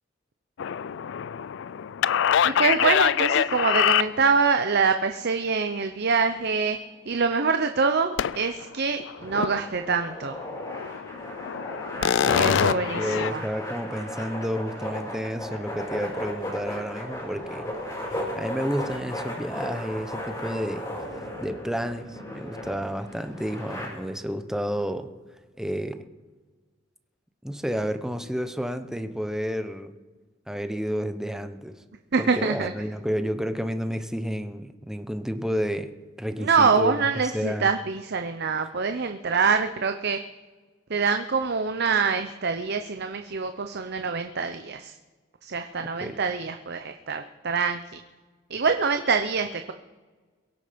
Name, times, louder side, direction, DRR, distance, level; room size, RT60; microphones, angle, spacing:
sound 1, 0.6-4.5 8.2-8.6 9.0-9.6 10.0-10.1 10.4-13.3, left 9 dB, 65° left, 0.4 m, -25 dB
voice 1, 2.4-6.8 7.1-10.3 12.0-13.4 32.1-32.7 36.4-40.2 40.9-44.9 45.4-47.8 48.5-49.7, right 5 dB, 55° right, 7 dB, 0.7 m, -25 dB
sound 2, 9.2-23.9, left 1 dB, 20° left, 5.5 m, -36 dB
voice 2, 12.3-17.7 18.1-20.9 21.4-25.1 25.6-26.0 27.4-29.9 30.5-31.7 32.2-35.9 36.2-37.7 46.0-46.2, equal, 5° right, 8 dB, 0.9 m, -30 dB
22.5 x 8.0 x 5.2 m, 1.4 s
head